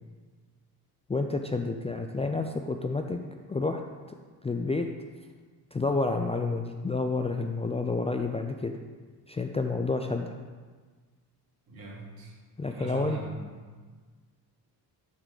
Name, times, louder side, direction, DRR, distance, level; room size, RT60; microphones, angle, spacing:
voice 1, 1.1-3.2 3.5-3.8 4.4-4.9 5.7-8.7 9.3-10.3 12.6-13.2, left 3 dB, 15° left, 4 dB, 0.4 m, -29 dB
voice 2, 11.7-12.3 12.7-13.7, right 4 dB, 60° right, -4 dB, 2.6 m, -40 dB
8.0 x 3.7 x 6.6 m, 1.5 s
cardioid pair, 85°, 41 cm